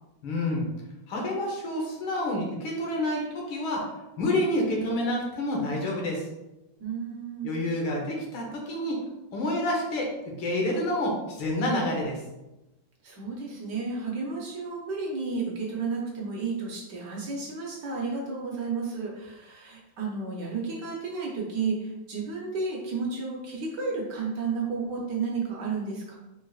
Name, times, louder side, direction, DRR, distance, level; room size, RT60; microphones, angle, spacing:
voice 1, 0.2-0.7 1.1-3.9 4.2-6.2 7.4-9.0 9.3-10.1 10.4-12.2, left 1 dB, 75° left, -1 dB, 1.8 m, -28 dB
voice 2, 6.8-7.5 13.0-26.1, right 4 dB, 65° right, -2 dB, 1.3 m, -32 dB
4.5 x 4.4 x 2.4 m, 0.97 s
omnidirectional pair, 2.3 m